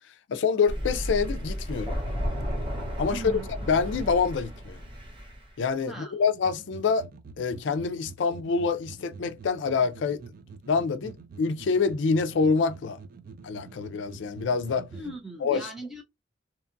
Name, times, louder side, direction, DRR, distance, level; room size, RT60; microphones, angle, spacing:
voice 1, 0.3-2.0 3.0-3.2 3.7-4.8 5.6-7.1 7.4-10.2 10.7-13.0 13.4-14.9 15.4-15.7, left 5 dB, 70° left, 0.4 m, -26 dB
Thunder, 0.7-5.5, equal, 25° right, 1.0 m, -33 dB
voice 2, 3.0-3.5 5.9-6.1 14.9-16.0, right 2 dB, ahead, 0.8 m, -39 dB
sound 1, 6.3-15.2, right 5 dB, 50° right, 0.3 m, -46 dB
2.9 x 2.3 x 2.5 m
head